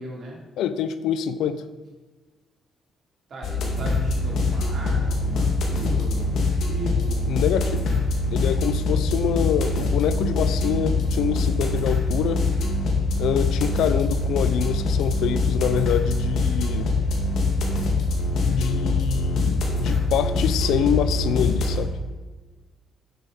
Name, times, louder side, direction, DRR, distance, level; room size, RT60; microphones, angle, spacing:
voice 1, 0.0-0.4 3.3-7.2, right 1 dB, 50° right, -2 dB, 3.2 m, -37 dB
voice 2, 0.6-1.6 7.3-7.9 8.3-12.5 13.2-16.9 18.4-22.0, left 9 dB, 85° left, 13 dB, 0.5 m, -25 dB
sound 1, 3.4-21.8, left 2 dB, 65° left, 2.1 m, -23 dB
9.3 x 6.3 x 5.2 m, 1.3 s
cardioid pair, 90°, 0 cm